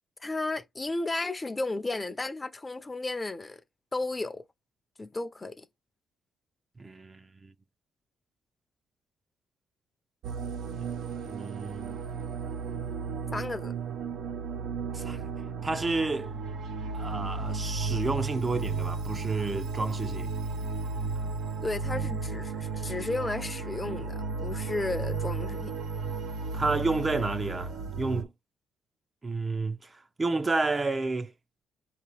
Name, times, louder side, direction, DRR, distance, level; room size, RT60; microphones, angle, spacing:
voice 1, 0.2-3.6 3.9-4.4 5.0-5.7 13.3-13.7 21.6-25.7, left 2 dB, 20° left, 0.5 m, -33 dB
voice 2, 6.8-7.5 10.8-10.9 11.3-12.0 14.9-15.3 15.6-16.3 16.9-20.3 26.5-28.3 29.2-31.3, right 3 dB, 25° right, 0.4 m, -31 dB
sound 1, 10.2-28.2, right 4 dB, 85° right, 0.5 m, -34 dB
4.5 x 2.9 x 3.3 m
cardioid pair, 90°, 0 cm